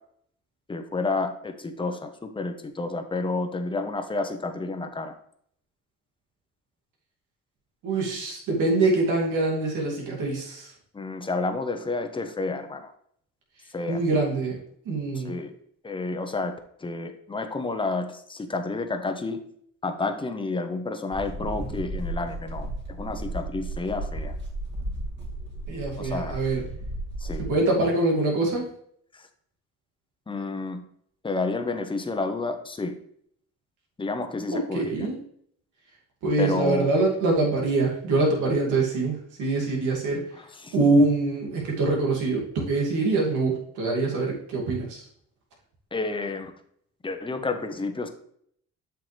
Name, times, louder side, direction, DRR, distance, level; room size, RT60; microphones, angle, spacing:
voice 1, 0.7-5.1 10.9-12.9 13.7-14.0 15.2-15.5 15.8-19.4 19.8-24.3 26.0-26.4 27.2-27.5 29.1-29.3 30.3-30.8 31.2-33.0 34.0-35.1 36.4-36.9 40.6-40.7 45.9-46.5 47.0-48.1, left 3 dB, 15° left, 7 dB, 0.9 m, -30 dB
voice 2, 7.8-10.7 13.9-14.6 14.8-15.3 25.7-26.6 27.4-28.7 34.5-35.2 36.2-40.3 40.7-45.1, right 2 dB, 85° right, -2 dB, 2.5 m, -24 dB
sound 1, 21.1-27.5, right 1 dB, 35° right, 2.5 m, -34 dB
7.8 x 5.8 x 3.3 m, 0.66 s
cardioid pair, 90°, 30 cm